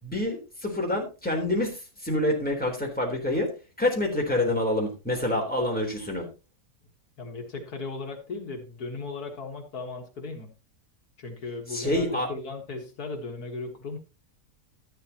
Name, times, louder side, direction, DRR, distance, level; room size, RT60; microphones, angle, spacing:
voice 1, 0.0-3.5 3.8-6.3 11.7-12.3, left 1 dB, 5° left, -1 dB, 3.7 m, -27 dB
voice 2, 7.2-10.5 11.2-14.0, left 3 dB, 70° left, 2 dB, 2.2 m, -37 dB
12.5 x 11.0 x 2.9 m, 0.30 s
omnidirectional pair, 1.7 m